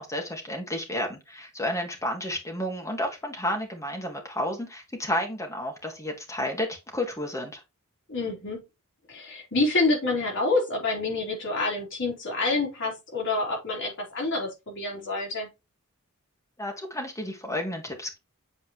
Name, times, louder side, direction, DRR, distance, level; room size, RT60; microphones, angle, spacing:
voice 1, 0.0-7.6 16.6-18.2, left 1 dB, 15° left, 2 dB, 2.0 m, -31 dB
voice 2, 8.1-8.6 9.1-15.5, left 3 dB, 60° left, -1 dB, 3.3 m, -27 dB
8.2 x 4.6 x 3.1 m, 0.23 s
head